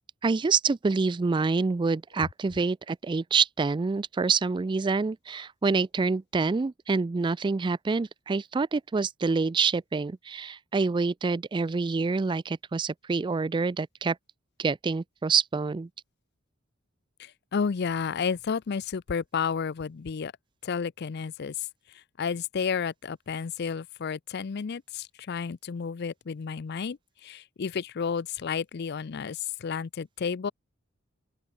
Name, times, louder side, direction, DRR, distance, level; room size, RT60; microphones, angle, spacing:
voice 1, 0.2-14.2 14.6-15.9, right 4 dB, 25° right, 0.3 m, -27 dB
voice 2, 17.2-20.3 20.6-21.5 22.2-27.0 27.2-30.5, left 6 dB, 55° left, 0.4 m, -31 dB
open air
head